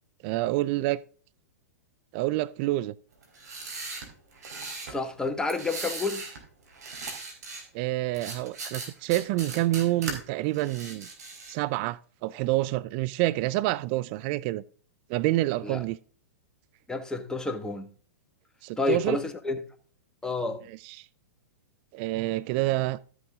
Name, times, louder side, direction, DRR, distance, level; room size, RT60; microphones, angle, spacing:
voice 1, 0.2-1.0 2.1-2.9 7.7-11.1 11.5-14.6 15.1-16.0 18.6-19.2 20.8-21.1 21.9-23.0, right 17 dB, 45° right, 0.4 m, -27 dB
sound 1, 3.2-5.0 5.5-6.4 6.7-7.6 8.1-10.1 10.5-11.6, right 3 dB, 75° right, 3.9 m, -38 dB
voice 2, 4.9-6.2 15.6-15.8 16.9-17.9 18.8-19.6 20.2-20.6, left 3 dB, 10° left, 1.4 m, -29 dB
12.5 x 8.0 x 3.5 m
hypercardioid pair, 115°, 9 cm